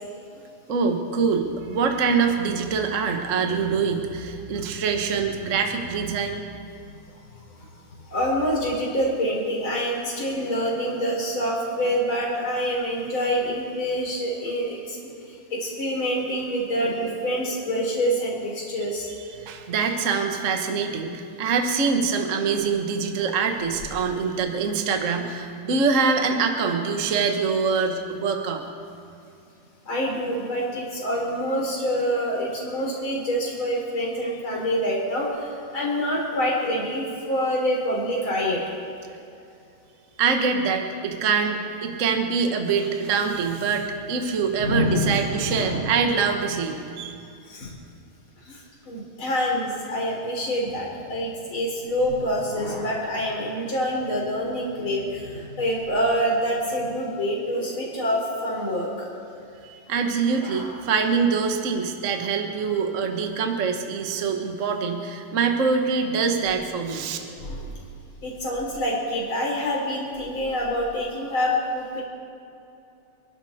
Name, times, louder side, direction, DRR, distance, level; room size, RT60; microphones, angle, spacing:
voice 1, 0.7-6.4 18.8-18.9 19.2-28.6 40.2-47.1 59.6-67.2, right 5 dB, 90° right, 4 dB, 0.6 m, -24 dB
voice 2, 8.1-15.0 15.2-19.1 29.9-38.6 44.6-45.9 47.5-47.7 48.4-59.1 60.4-60.7 67.1-67.7 68.2-72.0, equal, 35° left, -3 dB, 4.4 m, -26 dB
28.5 x 11.5 x 4.3 m, 2.6 s
omnidirectional pair, 3.9 m